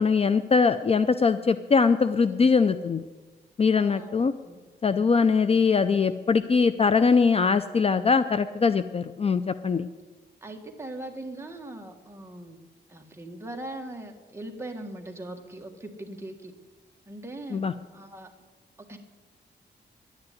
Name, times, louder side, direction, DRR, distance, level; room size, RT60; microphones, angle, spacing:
voice 1, 0.0-3.0 3.6-4.3 4.8-9.9 17.5-17.7, left 5 dB, 35° left, 12 dB, 0.4 m, -22 dB
voice 2, 3.8-4.2 4.4-4.6 10.4-12.6 12.9-16.5 17.1-17.6 17.9-18.3 18.9-19.0, right 1 dB, 15° right, 2 dB, 1.7 m, -40 dB
11.0 x 9.7 x 9.4 m, 1.3 s
wide cardioid pair, 145°, 19 cm